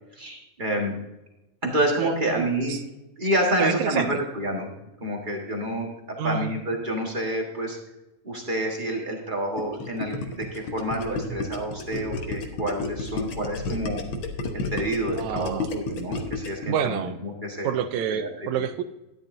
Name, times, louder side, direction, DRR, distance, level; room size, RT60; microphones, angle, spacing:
voice 1, 0.1-0.9 1.6-2.8 3.2-4.7 5.0-7.8 8.2-14.0 14.5-17.8 18.1-18.5, right 1 dB, 45° right, 0 dB, 0.6 m, -28 dB
voice 2, 2.0-2.8 3.6-4.2 6.2-6.6 11.3-11.4 15.2-15.7 16.7-17.2 17.6-18.8, right 8 dB, 80° right, 9 dB, 1.8 m, -28 dB
Gurgling, 9.6-16.7, left 3 dB, 60° left, 1.4 m, -31 dB
13.0 x 10.5 x 2.6 m, 0.95 s
omnidirectional pair, 3.5 m